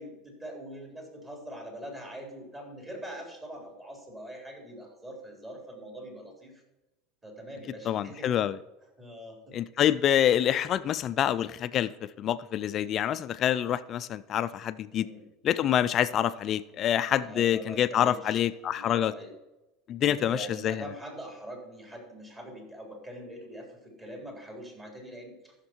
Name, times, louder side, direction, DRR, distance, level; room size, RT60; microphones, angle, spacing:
voice 1, 0.0-6.6 7.2-8.3 9.0-9.6 14.9-15.3 17.1-18.4 18.7-19.3 20.0-25.5, equal, 20° right, 0 dB, 3.8 m, -43 dB
voice 2, 7.9-8.6 9.5-15.1 15.4-19.1 19.9-20.8, left 10 dB, 40° left, 14 dB, 0.5 m, -26 dB
14.5 x 6.6 x 4.5 m, 1.0 s
supercardioid pair, 120°, 0 cm